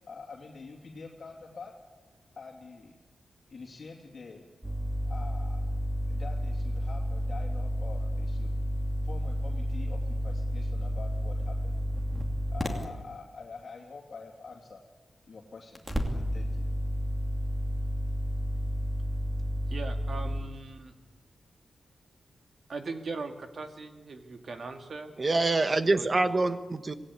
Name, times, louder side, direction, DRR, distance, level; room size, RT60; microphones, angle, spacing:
voice 1, 0.1-1.7 2.3-3.0 3.5-4.4 5.0-5.6 6.1-8.5 9.0-11.7 12.5-14.8 15.3-15.8 16.1-16.7, left 4 dB, 45° left, 0 dB, 3.0 m, -46 dB
sound 1, 4.6-12.8 15.7-20.4, equal, ahead, 2.8 m, -31 dB
voice 2, 19.7-20.9 22.7-25.1 25.9-26.4, right 4 dB, 50° right, 5 dB, 2.3 m, -40 dB
voice 3, 25.2-26.9, right 2 dB, 30° right, 10 dB, 1.2 m, -25 dB
26.5 x 18.0 x 8.4 m, 1.2 s
wide cardioid pair, 150°, 0 cm